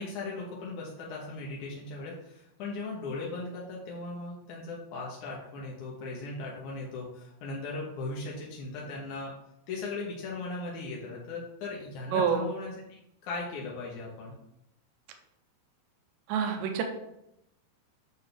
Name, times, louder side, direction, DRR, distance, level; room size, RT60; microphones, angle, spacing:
voice 1, 0.0-9.3 9.7-14.3, left 3 dB, 65° left, -4 dB, 2.0 m, -38 dB
voice 2, 16.3-16.8, right 7 dB, 85° right, 4 dB, 3.1 m, -27 dB
8.6 x 6.5 x 3.4 m, 0.81 s
omnidirectional pair, 5.0 m